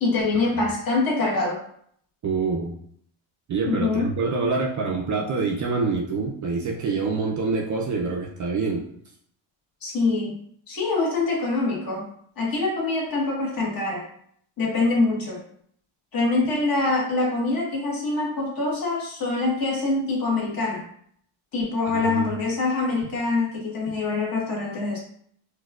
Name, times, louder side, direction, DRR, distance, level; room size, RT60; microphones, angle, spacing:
voice 1, 0.0-1.6 3.7-4.1 9.8-10.4 10.7-12.1 12.4-14.1 14.6-15.4 16.1-20.8 21.5-25.0, left 3 dB, 45° left, -3 dB, 1.2 m, -24 dB
voice 2, 2.2-2.8 3.5-8.8 21.8-22.3 23.9-24.0, right 4 dB, 40° right, 0 dB, 0.4 m, -26 dB
4.2 x 2.3 x 2.3 m, 0.66 s
cardioid pair, 110°, 50 cm